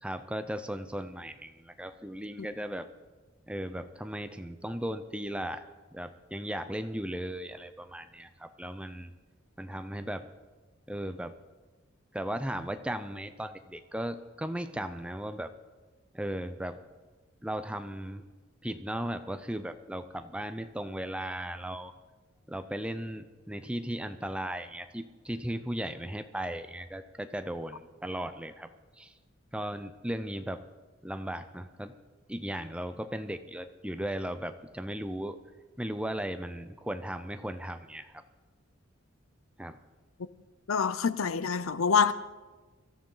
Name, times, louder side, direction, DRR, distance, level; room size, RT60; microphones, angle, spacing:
voice 1, 0.0-2.9 3.5-5.6 5.9-9.1 9.6-10.3 10.9-11.3 12.1-15.5 16.1-16.8 17.4-18.2 18.6-21.9 22.5-28.7 29.0-29.1 29.5-30.6 31.0-31.9 32.3-35.4 35.8-38.2 39.6-39.8, right 1 dB, 5° right, 0.6 m, -36 dB
voice 2, 40.7-42.1, left 6 dB, 85° left, 0.6 m, -26 dB
23.5 x 13.5 x 3.9 m
head